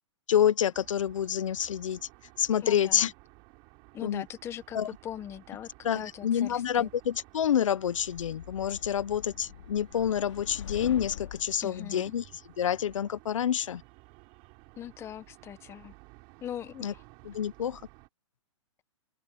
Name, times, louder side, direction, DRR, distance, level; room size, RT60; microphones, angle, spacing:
voice 1, 0.3-2.0 2.4-3.1 4.0-4.2 4.7-4.9 5.8-12.2 12.6-13.8 16.8-16.9 17.3-17.8, left 9 dB, 85° left, 0.7 m, -28 dB
sound 1, 0.7-18.1, right 28 dB, 35° right, 5.6 m, -55 dB
voice 2, 2.6-3.1 3.9-6.9 11.6-12.2 14.8-15.9 16.4-17.0, left 10 dB, 15° left, 1.1 m, -41 dB
sound 2, 7.9-11.6, left 11 dB, 70° left, 2.7 m, -43 dB
open air
hypercardioid pair, 155°, 16 cm